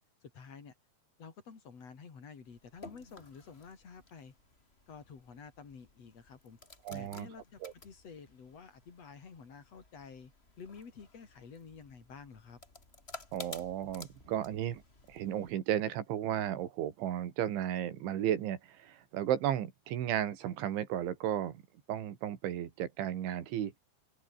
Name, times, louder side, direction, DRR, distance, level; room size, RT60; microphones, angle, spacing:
voice 1, 0.2-0.7 1.2-4.3 4.9-6.6 6.9-10.3 10.6-12.6, left 5 dB, 35° left, 4.1 m, -51 dB
soup dripping into pot, 2.4-15.5, left 3 dB, 15° left, 2.5 m, -54 dB
voice 2, 6.9-7.3 7.6-7.7 13.3-14.8 15.1-21.6 21.9-23.8, right 11 dB, 85° right, 4.8 m, -34 dB
omnidirectional pair, 5.3 m